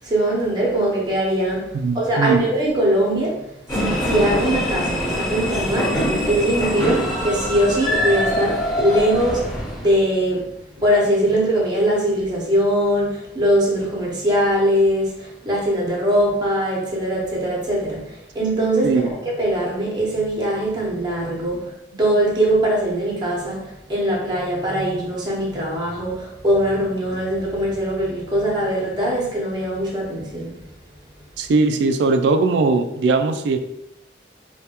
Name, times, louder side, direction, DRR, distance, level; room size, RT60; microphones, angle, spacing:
voice 1, 0.0-1.7 1.9-10.5 10.8-21.7 22.0-30.6, right 1 dB, 25° right, -4 dB, 0.8 m, -21 dB
voice 2, 1.7-2.4 18.8-19.1 31.4-33.6, right 3 dB, 70° right, 8 dB, 0.3 m, -19 dB
sound 1, 3.7-10.0, equal, 25° left, 1.0 m, -23 dB
3.3 x 2.3 x 2.8 m, 0.85 s
head